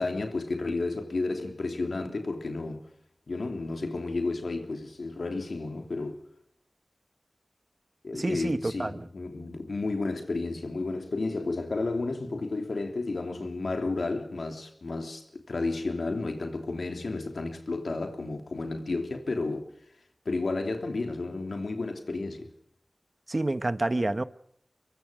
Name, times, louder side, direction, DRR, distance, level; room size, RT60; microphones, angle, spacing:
voice 1, 0.0-2.9 3.3-6.2 8.0-19.7 20.2-22.5, left 3 dB, 90° left, 3.2 m, -32 dB
voice 2, 8.1-9.0 23.3-24.2, right 2 dB, 45° right, 1.2 m, -28 dB
24.5 x 23.0 x 5.2 m
wide cardioid pair, 45°, 0 cm